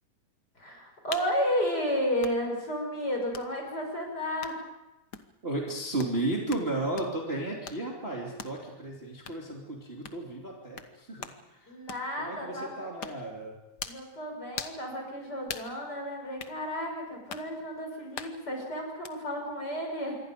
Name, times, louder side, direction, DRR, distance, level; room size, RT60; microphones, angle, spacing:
voice 1, 0.6-4.6 11.7-12.9 13.8-20.2, equal, 30° left, 2 dB, 6.4 m, -32 dB
sound 1, 1.1-1.3 2.2-2.4 3.3-3.5 4.4-4.6 5.1-5.3 6.0-6.2 6.5-6.7 7.0-7.1 7.6-7.8 8.4-8.6 9.2-9.4 10.0-10.2 10.8-10.9 11.2-11.4 11.9-12.1 13.0-13.2 13.8-14.0 14.5-14.8 15.5-15.7 16.4-16.6 17.3-17.5 18.2-18.4 19.0-19.1, left 7 dB, 75° left, 0.9 m, -40 dB
voice 2, 5.4-11.7 12.2-13.5, right 2 dB, 20° right, -2 dB, 2.9 m, -34 dB
27.0 x 23.5 x 5.2 m, 0.98 s
omnidirectional pair, 3.7 m